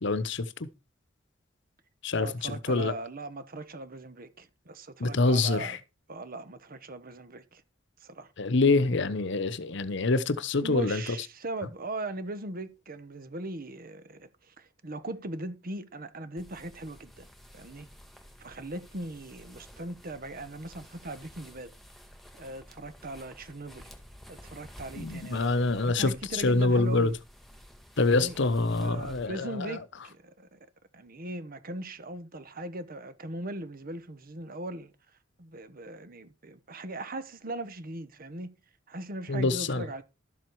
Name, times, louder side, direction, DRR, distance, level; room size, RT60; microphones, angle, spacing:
voice 1, 0.0-0.7 2.0-2.9 5.0-5.8 8.4-11.0 24.9-27.1 28.0-29.8 39.3-39.9, left 3 dB, 65° left, 0.9 m, -26 dB
voice 2, 2.2-5.8 6.1-7.6 8.0-8.3 10.6-17.3 17.5-17.9 18.4-21.7 22.4-23.9 24.3-27.1 28.1-28.4 28.8-30.6 30.9-34.9 35.4-38.6 38.9-40.0, right 2 dB, 50° right, 1.1 m, -39 dB
sound 1, 16.4-29.3, equal, ahead, 2.0 m, -52 dB
12.5 x 7.6 x 4.7 m
head